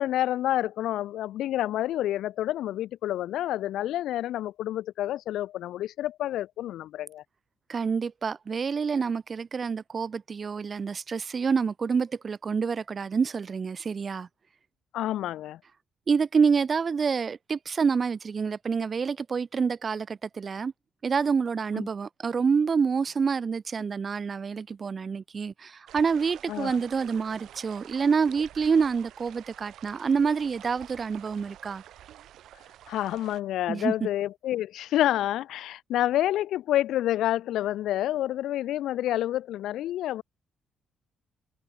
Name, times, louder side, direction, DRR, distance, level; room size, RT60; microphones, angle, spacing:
voice 1, 0.0-7.2 14.9-15.6 21.7-21.9 26.5-26.8 32.9-40.2, left 13 dB, 80° left, 1.0 m, -28 dB
voice 2, 7.7-14.3 16.1-20.7 21.0-31.8 33.7-33.9, right 5 dB, 40° right, 2.4 m, -27 dB
sound 1, 25.9-33.4, right 12 dB, 75° right, 3.8 m, -49 dB
cardioid pair, 90°, 0 cm